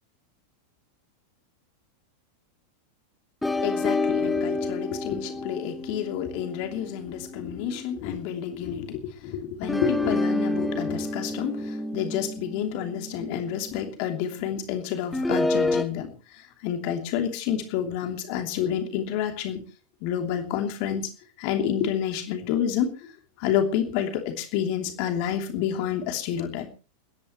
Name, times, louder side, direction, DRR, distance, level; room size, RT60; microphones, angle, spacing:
sound 1, 3.4-8.0 9.6-13.8 15.1-15.8, left 2 dB, 5° left, 1.2 m, -29 dB
voice 1, 3.6-16.1 16.6-19.6 20.0-21.1 21.4-23.1 23.4-26.7, left 9 dB, 45° left, 5 dB, 2.9 m, -29 dB
29.5 x 10.5 x 3.1 m, 0.34 s
figure-of-eight pair, 90°, 0 cm